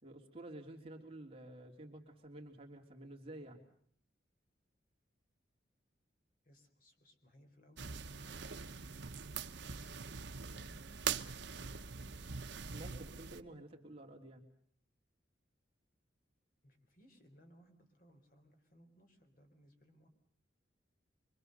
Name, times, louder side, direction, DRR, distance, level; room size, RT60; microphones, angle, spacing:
voice 1, 0.0-3.6 12.7-14.4, right 1 dB, 30° right, 1 dB, 3.1 m, -51 dB
voice 2, 6.4-8.5 10.5-10.8 16.6-20.1, equal, 50° left, 5 dB, 4.3 m, -64 dB
sound 1, 7.8-13.4, right 6 dB, 70° right, 1.0 m, -43 dB
Trumpet, 8.5-12.8, left 3 dB, 90° left, 7.0 m, -75 dB
25.5 x 24.5 x 6.7 m, 0.62 s
head